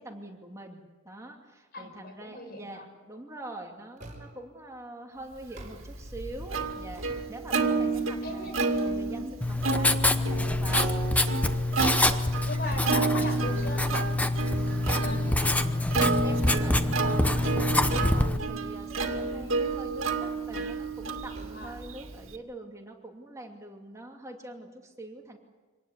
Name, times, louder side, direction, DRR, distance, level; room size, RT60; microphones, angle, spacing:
voice 1, 0.0-8.5 8.9-11.3 14.9-15.4 16.2-25.4, right 1 dB, 15° right, 1 dB, 2.6 m, -44 dB
voice 2, 1.7-2.8 8.2-8.6 12.0-14.0 15.0-15.5 21.5-21.7, left 1 dB, 50° left, 4 dB, 5.6 m, -38 dB
sound 1, 4.0-4.5 5.4-6.2 6.7-7.8 8.3-9.8 10.3-11.3 12.1-12.6 13.0-13.2 13.6-15.3 16.5-17.3 19.0-19.8 20.6-20.7 21.3-22.1, right 1 dB, 40° right, 5.3 m, -49 dB
Plucked string instrument, 5.6-22.4, right 4 dB, 80° right, 2.3 m, -31 dB
Writing, 9.4-18.4, left 2 dB, 5° left, 0.9 m, -26 dB
26.0 x 19.0 x 8.2 m, 1.3 s
head